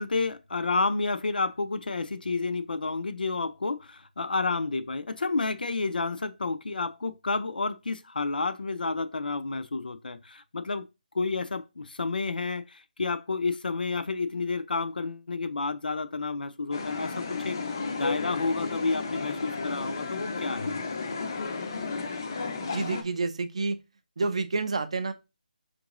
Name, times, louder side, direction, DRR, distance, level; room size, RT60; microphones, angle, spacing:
voice 1, 0.0-10.8 11.1-20.8, left 3 dB, 75° left, 0.5 m, -30 dB
sound 1, 16.7-23.0, left 4 dB, 25° left, 0.4 m, -33 dB
voice 2, 22.7-23.8 24.2-25.1, right 3 dB, 40° right, 0.4 m, -29 dB
4.4 x 2.6 x 2.9 m
figure-of-eight pair, 175°, 5 cm